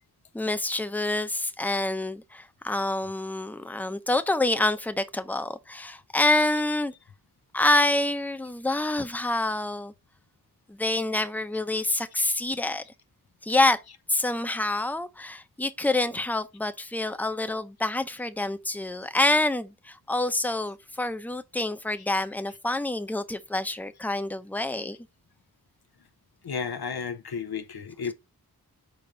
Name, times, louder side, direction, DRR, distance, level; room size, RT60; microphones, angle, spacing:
voice 1, 0.3-6.9 7.5-9.9 10.7-12.8 13.4-13.8 14.1-25.0, left 2 dB, 5° left, 0.8 m, -27 dB
voice 2, 26.4-28.1, left 6 dB, 80° left, 0.8 m, -33 dB
5.1 x 4.4 x 5.0 m
wide cardioid pair, 55°, 37 cm